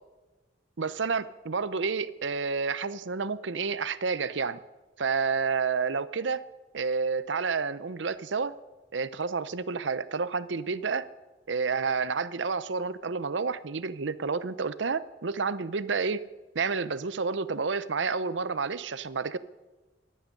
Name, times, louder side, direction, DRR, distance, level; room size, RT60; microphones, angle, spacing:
voice 1, 0.8-4.6 5.0-6.5 6.7-8.5 8.9-11.1 11.5-16.3 16.5-19.4, right 5 dB, 75° right, 16 dB, 0.7 m, -30 dB
12.0 x 11.0 x 9.9 m, 1.2 s
head